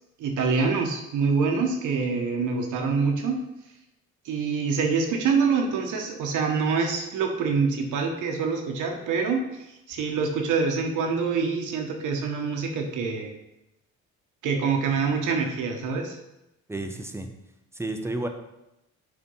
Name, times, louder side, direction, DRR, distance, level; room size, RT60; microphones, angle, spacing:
voice 1, 0.2-3.4 4.2-13.3 14.4-16.2, right 5 dB, 80° right, 3 dB, 1.4 m, -25 dB
voice 2, 16.7-17.3 17.7-18.3, right 2 dB, 10° right, 5 dB, 0.9 m, -31 dB
7.1 x 4.3 x 5.5 m, 0.91 s
cardioid pair, 90°, 30 cm